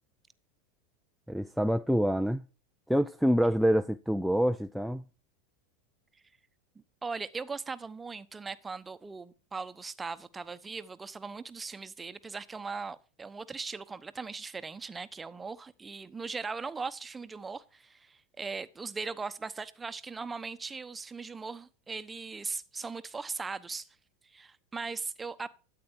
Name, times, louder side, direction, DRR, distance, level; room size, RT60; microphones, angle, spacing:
voice 1, 1.3-2.4 2.9-5.0, equal, ahead, 0.5 m, -26 dB
voice 2, 7.0-23.9 24.2-25.5, right 4 dB, 15° right, 1.0 m, -39 dB
13.0 x 8.6 x 4.7 m
hypercardioid pair, 105°, 0 cm